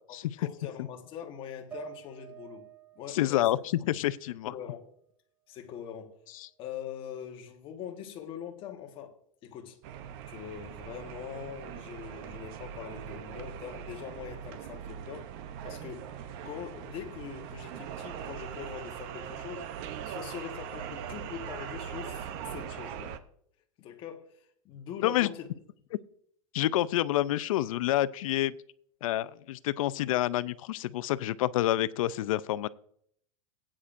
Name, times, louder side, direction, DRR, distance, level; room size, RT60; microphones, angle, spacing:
voice 1, 0.4-2.7 2.9-3.6 4.4-4.9 5.5-6.1 6.6-9.1 9.4-9.8 10.3-15.3 15.6-16.1 16.4-19.7 20.0-23.2 23.8-25.5, left 9 dB, 30° left, 1.3 m, -42 dB
sound 1, 1.7-5.1 5.5-6.5, right 15 dB, 10° right, 0.4 m, -51 dB
voice 2, 3.1-3.6 3.9-4.5 6.4-6.5 25.0-25.3 26.5-28.6 29.0-32.7, left 14 dB, 75° left, 0.5 m, -28 dB
sound 2, 9.8-23.2, right 9 dB, 45° right, 0.7 m, -41 dB
18.5 x 8.7 x 2.6 m
supercardioid pair, 155°, 18 cm